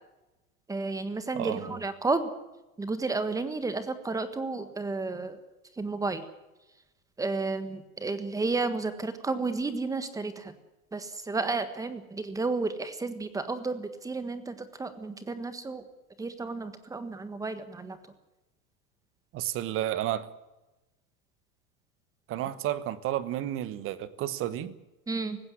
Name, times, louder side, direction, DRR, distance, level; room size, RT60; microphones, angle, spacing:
voice 1, 0.7-2.3 2.8-5.4 5.8-6.2 7.2-10.5 10.9-15.8 16.2-18.0 25.1-25.4, right 3 dB, 10° right, 1.5 m, -32 dB
voice 2, 1.3-1.8 19.3-20.3 22.3-24.7, right 13 dB, 30° right, 1.2 m, -31 dB
18.5 x 16.5 x 9.5 m
supercardioid pair, 155°, 43 cm